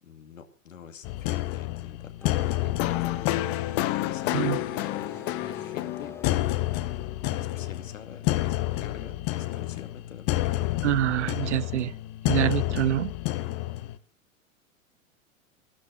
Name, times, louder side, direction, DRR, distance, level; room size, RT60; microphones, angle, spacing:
voice 1, 0.0-6.5 7.4-10.8, left 7 dB, 70° left, 8 dB, 2.5 m, -46 dB
sound 1, 1.0-14.0, left 16 dB, 35° left, 1.1 m, -29 dB
sound 2, 2.2-7.9, left 4 dB, 5° left, 0.9 m, -47 dB
voice 2, 10.8-12.0 12.3-13.1, right 12 dB, 55° right, 19 dB, 0.9 m, -26 dB
15.0 x 12.5 x 6.1 m, 0.42 s
figure-of-eight pair, 95°, 41 cm